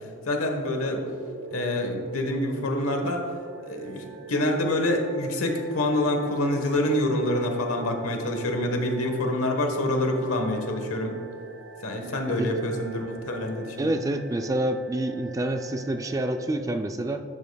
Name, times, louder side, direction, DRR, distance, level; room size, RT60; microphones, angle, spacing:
voice 1, 0.3-1.0 1.5-3.2 3.6-11.2 11.8-13.9, left 1 dB, 75° left, 3 dB, 1.2 m, -26 dB
sound 1, 0.9-16.5, right 5 dB, 60° right, 0.6 m, -44 dB
voice 2, 13.8-17.2, right 1 dB, 15° right, 7 dB, 0.3 m, -27 dB
10.5 x 8.4 x 2.3 m, 2.4 s
head